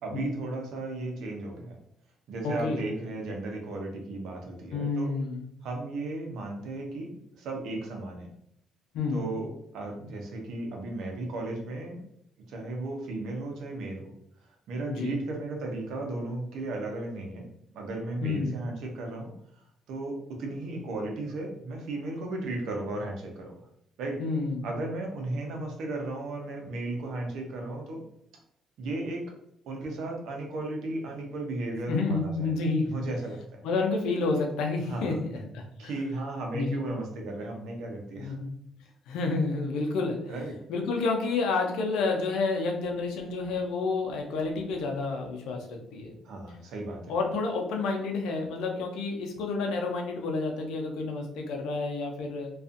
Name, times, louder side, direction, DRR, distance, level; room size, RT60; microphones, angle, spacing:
voice 1, 0.0-1.8 2.3-5.1 5.6-7.1 7.4-8.3 9.1-9.5 9.7-12.0 12.5-14.1 14.7-17.5 17.7-19.3 19.9-23.5 24.0-24.2 24.6-28.0 28.8-29.2 29.7-33.4 34.9-35.1 35.8-38.4 40.3-40.6 46.2-47.1, right 2 dB, 75° right, 1 dB, 0.7 m, -35 dB
voice 2, 2.4-2.8 4.7-5.4 8.9-9.2 14.9-15.1 18.2-18.5 24.2-24.7 31.9-32.9 33.6-35.2 35.5-35.9 36.5-36.8 38.2-38.5 39.1-40.2 40.7-46.1 47.1-52.5, left 3 dB, 85° left, 2 dB, 0.5 m, -29 dB
2.5 x 2.4 x 2.4 m, 0.74 s
cardioid pair, 100°, 0 cm